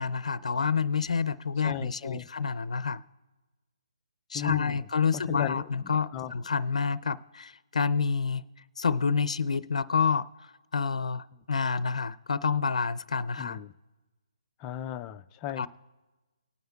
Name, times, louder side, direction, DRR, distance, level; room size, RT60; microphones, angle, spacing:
voice 1, 0.0-3.0 4.3-8.4 8.8-10.3 10.7-13.6 15.6-15.7, left 5 dB, 75° left, 0.5 m, -28 dB
voice 2, 1.6-2.3 4.3-4.9 5.3-6.3 13.4-13.7 14.6-15.7, left 11 dB, 15° left, 0.3 m, -36 dB
19.5 x 9.3 x 2.3 m
hypercardioid pair, 160°, 4 cm